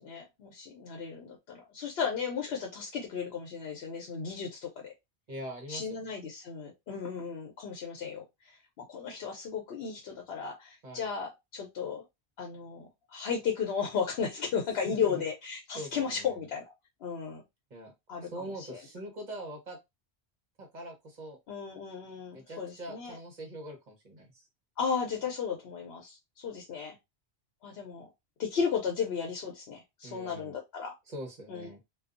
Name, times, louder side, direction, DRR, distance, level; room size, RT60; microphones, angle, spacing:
voice 1, 0.0-4.9 5.7-8.2 8.9-12.0 12.4-16.6 17.0-17.4 18.1-18.3 18.7-18.8 21.5-23.2 24.8-27.0 27.6-28.1 28.4-30.9 31.5-31.7, left 6 dB, 70° left, 1 dB, 0.9 m, -34 dB
voice 2, 5.3-6.1 10.8-11.1 14.8-15.1 15.8-16.4 17.7-17.9 18.2-19.8 20.6-21.4 22.3-24.4 30.0-30.6 31.1-31.8, right 1 dB, 45° right, 2 dB, 1.0 m, -43 dB
2.5 x 2.3 x 2.4 m, 0.20 s
omnidirectional pair, 1.1 m